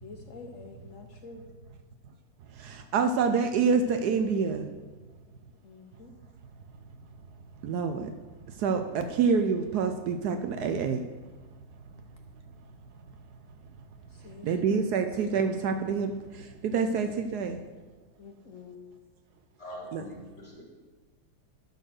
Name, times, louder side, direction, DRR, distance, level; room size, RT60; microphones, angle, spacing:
voice 1, 0.0-1.4 5.6-6.1 14.1-14.9 18.2-18.8, left 4 dB, 65° left, 5 dB, 0.8 m, -47 dB
voice 2, 2.5-4.7 7.6-8.1 8.5-11.0 14.4-17.6 19.9-20.0, right 5 dB, 70° right, 7 dB, 1.0 m, -27 dB
voice 3, 19.6-20.6, equal, 35° left, -4 dB, 2.0 m, -43 dB
12.0 x 4.1 x 6.4 m, 1.3 s
omnidirectional pair, 2.1 m